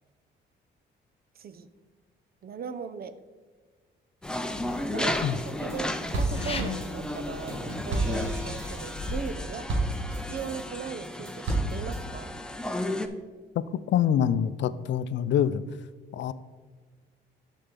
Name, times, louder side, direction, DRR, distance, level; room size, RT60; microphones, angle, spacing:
voice 1, 1.3-1.7 2.4-3.2 4.6-10.0 10.3-12.4, right 6 dB, 50° right, 12 dB, 0.7 m, -38 dB
sound 1, 4.2-9.3, left 2 dB, 30° left, 1.0 m, -41 dB
sound 2, 4.2-13.1, left 1 dB, 5° left, 0.6 m, -34 dB
sound 3, 5.3-5.8 6.1-10.6 11.0-12.0, right 2 dB, 70° right, 1.6 m, -31 dB
voice 2, 13.9-15.6 16.1-16.3, left 9 dB, 65° left, 15 dB, 0.5 m, -25 dB
12.0 x 4.6 x 3.8 m, 1.4 s
cardioid pair, 90°, 20 cm